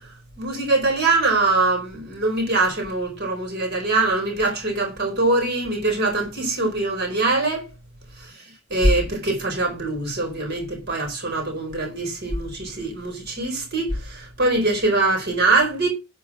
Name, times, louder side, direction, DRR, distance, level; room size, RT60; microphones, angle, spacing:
voice 1, 0.4-7.6 8.7-15.9, right 2 dB, 45° right, 4.8 m, -23 dB
9.6 x 4.6 x 6.2 m
head